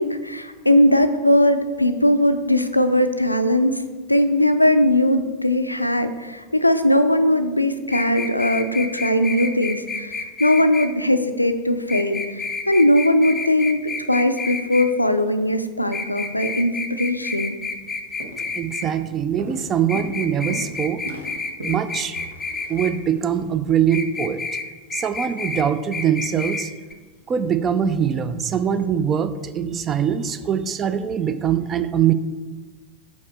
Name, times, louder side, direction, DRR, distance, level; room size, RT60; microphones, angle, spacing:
voice 1, 0.0-3.8 4.1-13.8 14.1-17.5, left 1 dB, 85° left, 9 dB, 0.4 m, -19 dB
sound 1, 7.9-10.9 11.9-14.9 15.9-18.9 19.9-22.9 23.9-24.7 24.9-25.7 25.9-26.7 26.9-27.0, left 4 dB, 15° left, 0.6 m, -29 dB
Walk footsteps, 17.6-17.9 18.2-18.5 18.8-23.4, right 2 dB, 70° right, 1.0 m, -37 dB
voice 2, 18.5-21.0 21.6-22.2 22.7-24.4 24.9-26.7 27.3-32.1, right 8 dB, 25° right, 12 dB, 0.4 m, -22 dB
6.4 x 4.7 x 4.2 m, 1.4 s
figure-of-eight pair, 90°, 0 cm